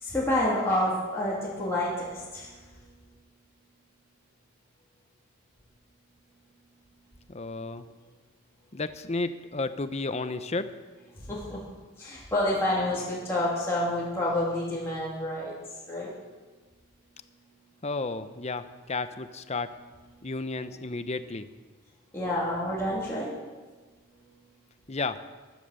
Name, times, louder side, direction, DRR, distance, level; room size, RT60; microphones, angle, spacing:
voice 1, 0.0-2.5 11.3-11.6 12.0-15.5 15.9-16.1 22.1-23.3, left 1 dB, 15° left, -8 dB, 2.9 m, -28 dB
voice 2, 7.3-7.8 8.7-10.7 17.8-19.7 20.2-21.5 24.9-25.2, left 3 dB, 30° left, 11 dB, 0.7 m, -32 dB
14.5 x 12.0 x 6.7 m, 1.3 s
head